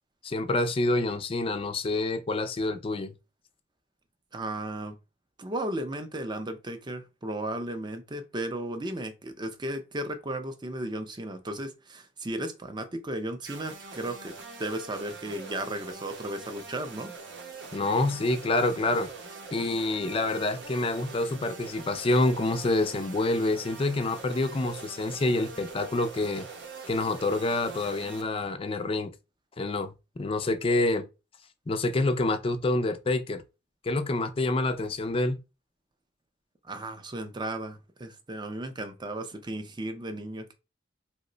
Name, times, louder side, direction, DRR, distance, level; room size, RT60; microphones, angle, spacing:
voice 1, 0.2-3.1 17.7-19.1 19.5-26.5 26.9-29.1 29.6-31.1 31.7-33.4 33.8-35.4, left 2 dB, 30° left, 0.4 m, -27 dB
voice 2, 4.3-5.0 5.4-14.3 14.6-17.1 36.7-40.5, right 1 dB, 25° right, 0.5 m, -35 dB
sound 1, 13.4-28.2, right 4 dB, 70° right, 0.7 m, -44 dB
3.0 x 2.1 x 3.8 m
head